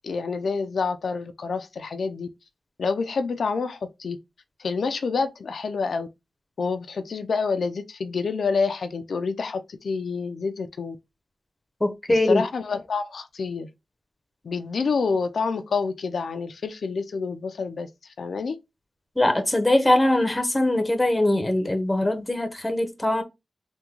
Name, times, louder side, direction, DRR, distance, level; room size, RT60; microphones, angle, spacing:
voice 1, 0.0-2.3 2.8-4.2 4.6-6.1 6.6-11.0 12.1-13.7 14.4-18.6, left 4 dB, 75° left, 0.3 m, -28 dB
voice 2, 11.8-12.4 19.2-23.2, left 1 dB, 15° left, 0.7 m, -22 dB
3.5 x 2.1 x 2.9 m
wide cardioid pair, 95°, 0 cm